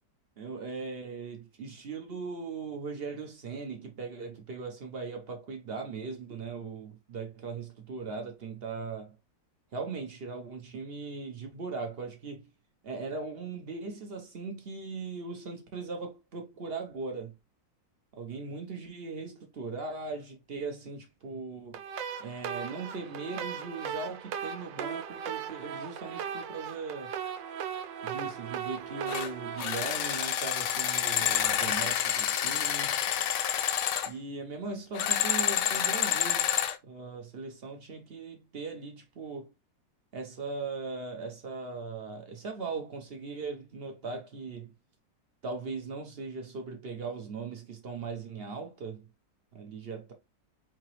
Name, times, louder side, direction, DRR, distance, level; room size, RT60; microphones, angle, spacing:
voice 1, 0.4-9.1 9.7-12.5 12.8-17.3 18.1-21.8 22.2-27.1 28.0-33.0 34.0-36.5 36.8-39.5 40.1-44.7 45.4-49.0 49.5-50.1, right 4 dB, 60° right, 0.6 m, -39 dB
sound 1, 21.7-30.8, right 8 dB, 85° right, 1.3 m, -38 dB
sound 2, 29.1-29.3 29.6-34.1 34.9-36.8, left 10 dB, 75° left, 1.2 m, -28 dB
4.8 x 2.9 x 3.0 m
omnidirectional pair, 2.0 m